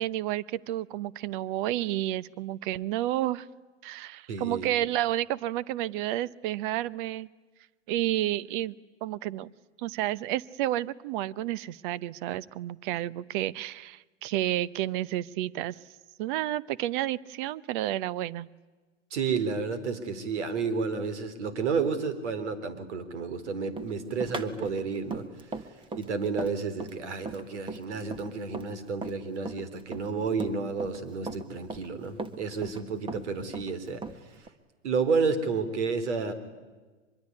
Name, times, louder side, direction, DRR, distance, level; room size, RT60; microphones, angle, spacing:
voice 1, 0.0-3.5 3.8-7.3 7.9-9.5 9.8-15.8 16.2-18.5, right 14 dB, 40° right, 20 dB, 0.9 m, -31 dB
voice 2, 4.3-4.7 19.1-25.3 25.9-34.0 34.8-36.3, right 5 dB, 65° right, 12 dB, 3.9 m, -31 dB
Run, 23.8-29.2 29.5-31.0 31.3-32.8 33.1-34.5, right 3 dB, 15° right, 1.4 m, -38 dB
24.5 x 22.0 x 9.6 m, 1.3 s
hypercardioid pair, 110°, 38 cm